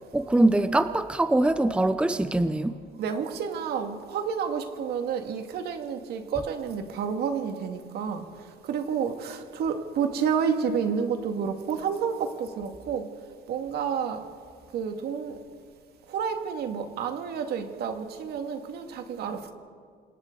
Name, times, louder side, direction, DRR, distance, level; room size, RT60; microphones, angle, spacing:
voice 1, 0.1-2.7, right 2 dB, 5° right, 12 dB, 0.7 m, -23 dB
voice 2, 3.0-8.3 8.6-13.1 13.5-14.3 14.7-15.4 16.1-19.5, right 7 dB, 70° right, 5 dB, 2.2 m, -30 dB
29.5 x 26.0 x 4.0 m, 2.1 s
cardioid pair, 110°, 17 cm